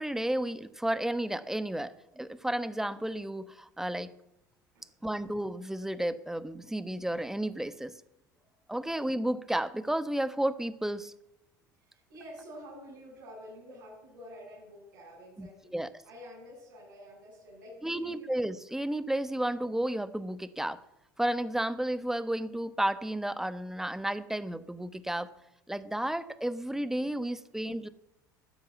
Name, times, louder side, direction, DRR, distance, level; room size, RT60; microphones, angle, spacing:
voice 1, 0.0-4.1 5.0-8.0 8.7-11.1 15.4-15.9 17.8-20.8 21.2-25.3 25.7-27.9, right 1 dB, 5° right, 15 dB, 1.1 m, -32 dB
voice 2, 11.8-15.7 16.0-18.3, equal, 75° right, -5 dB, 7.9 m, -49 dB
14.5 x 9.8 x 9.3 m, 0.89 s
hypercardioid pair, 70°, 11 cm